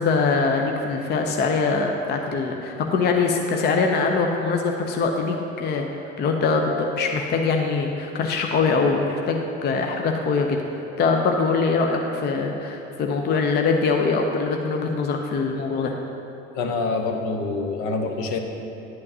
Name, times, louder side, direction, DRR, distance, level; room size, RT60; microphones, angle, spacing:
voice 1, 0.0-5.9 6.2-10.6 11.0-16.0, left 4 dB, 25° left, 3 dB, 0.6 m, -23 dB
voice 2, 16.5-18.4, left 3 dB, 55° left, 4 dB, 1.0 m, -26 dB
11.0 x 8.6 x 2.8 m, 2.9 s
figure-of-eight pair, 70°, 40 cm